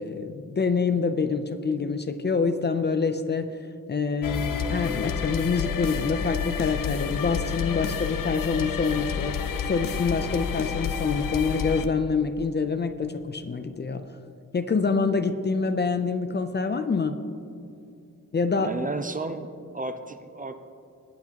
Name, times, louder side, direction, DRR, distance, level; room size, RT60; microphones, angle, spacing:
voice 1, 0.0-3.5 3.9-14.0 14.5-17.2 18.3-18.7, left 4 dB, 35° left, 9 dB, 0.5 m, -26 dB
sound 1, 4.2-11.9, left 7 dB, 85° left, 0.6 m, -30 dB
voice 2, 18.6-20.6, right 3 dB, 25° right, 8 dB, 0.5 m, -33 dB
19.5 x 8.6 x 2.9 m, 2.5 s
wide cardioid pair, 140°, 32 cm